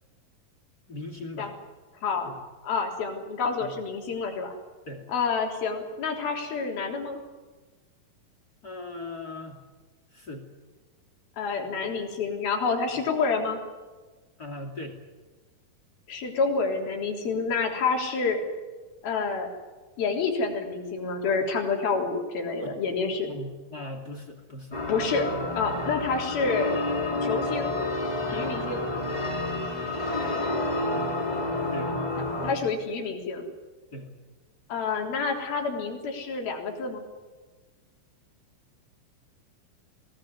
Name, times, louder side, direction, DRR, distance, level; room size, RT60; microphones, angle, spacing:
voice 1, 0.9-1.5 2.2-2.4 3.6-3.7 4.9-5.1 8.6-9.6 10.1-10.5 14.4-15.0 22.6-22.8 23.2-24.8 25.8-25.9 30.9-31.1 31.7-32.0 33.9-34.1, left 2 dB, 25° left, 6 dB, 2.5 m, -39 dB
voice 2, 2.0-2.3 2.6-4.6 5.1-7.2 11.4-13.6 16.1-18.4 19.0-19.5 20.0-23.3 24.9-25.3 25.6-26.7 27.2-27.7 28.3-28.9 32.4-33.4 34.7-37.0, left 4 dB, 65° left, 2 dB, 5.4 m, -28 dB
sound 1, 24.7-32.5, left 2 dB, 10° left, 2.9 m, -29 dB
22.5 x 18.0 x 9.7 m, 1.3 s
omnidirectional pair, 4.5 m